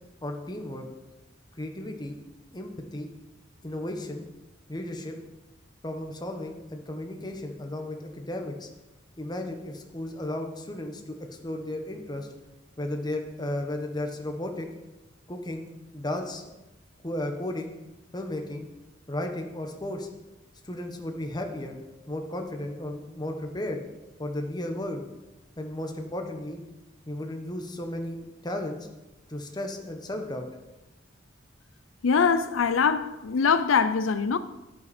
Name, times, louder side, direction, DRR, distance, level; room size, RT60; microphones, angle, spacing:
voice 1, 0.2-0.8 1.6-2.2 2.5-3.1 3.6-4.2 4.7-5.2 5.8-8.7 9.2-11.2 11.4-12.3 12.8-14.7 15.3-15.7 15.9-16.4 17.0-17.7 18.1-18.7 19.1-20.1 20.6-21.8 22.1-23.8 24.2-25.0 25.6-26.6 27.1-28.9 29.3-30.4, left 1 dB, 20° left, 1.2 m, -34 dB
voice 2, 32.0-34.4, left 5 dB, 90° left, 0.5 m, -23 dB
11.5 x 8.9 x 4.3 m
head